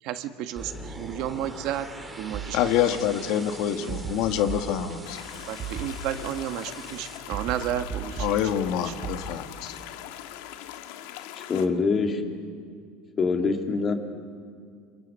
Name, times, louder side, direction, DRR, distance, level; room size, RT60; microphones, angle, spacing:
voice 1, 0.0-1.9 2.2-2.6 3.2-3.3 3.7-4.0 5.5-8.4 8.8-8.9, right 11 dB, 55° right, 9 dB, 1.3 m, -32 dB
sound 1, 0.6-7.2, right 1 dB, 10° right, 2.7 m, -43 dB
sound 2, 2.3-3.2 3.9-5.2 5.6-6.7 7.3-9.2, right 7 dB, 35° right, 4.0 m, -37 dB
voice 2, 2.5-5.2 8.2-9.7, left 10 dB, 60° left, 8 dB, 1.4 m, -26 dB
sound 3, 5.0-11.7, left 12 dB, 75° left, 1.4 m, -41 dB
voice 3, 11.4-12.3 13.2-13.9, left 4 dB, 25° left, 4 dB, 2.2 m, -24 dB
28.5 x 27.0 x 5.5 m, 2.2 s
cardioid pair, 150°, 0 cm